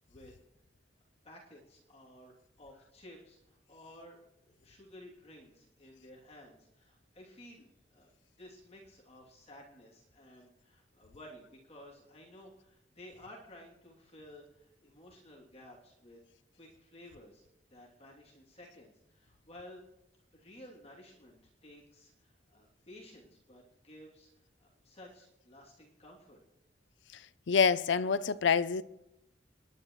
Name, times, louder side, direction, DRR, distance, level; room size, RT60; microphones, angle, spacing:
voice 1, 1.2-8.1 8.4-16.2 16.6-19.8 20.3-24.3 24.6-26.4, left 1 dB, 35° left, 2.9 m, -54 dB
voice 2, 27.5-28.8, left 6 dB, 80° left, 0.5 m, -26 dB
30.0 x 11.0 x 3.2 m
head